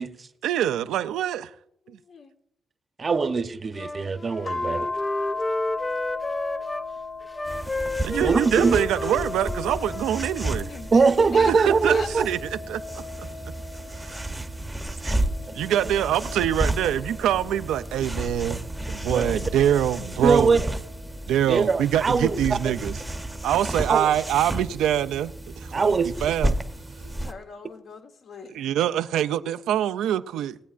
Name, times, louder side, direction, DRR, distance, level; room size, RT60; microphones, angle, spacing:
voice 1, 0.4-1.5 1.9-2.0 8.0-10.7 11.4-12.4 12.7-12.8 13.9-14.2 15.0-15.2 15.5-20.6 21.3-23.0 23.4-26.6 28.5-30.6, right 11 dB, 90° right, 0.4 m, -25 dB
voice 2, 1.8-2.3 10.7-11.0 11.3-11.6 11.9-12.1 27.0-28.7, left 5 dB, 65° left, 1.2 m, -40 dB
voice 3, 3.0-4.9 8.2-8.8 10.9-12.3 15.6-15.7 19.1-19.2 20.2-20.6 21.5-22.4 23.9-24.1 25.7-26.1, right 4 dB, 40° right, 0.8 m, -22 dB
Wind instrument woodwind instrument, 3.7-6.9 7.3-10.7, left 2 dB, 20° left, 0.4 m, -32 dB
sound 1, 4.5-11.2 11.6-14.5 15.1-17.9 18.6-21.1 22.4-23.5, left 3 dB, 45° left, 1.8 m, -38 dB
sound 2, 7.4-27.3, right 1 dB, 10° right, 0.8 m, -32 dB
18.5 x 8.2 x 2.5 m
cardioid pair, 75°, 0 cm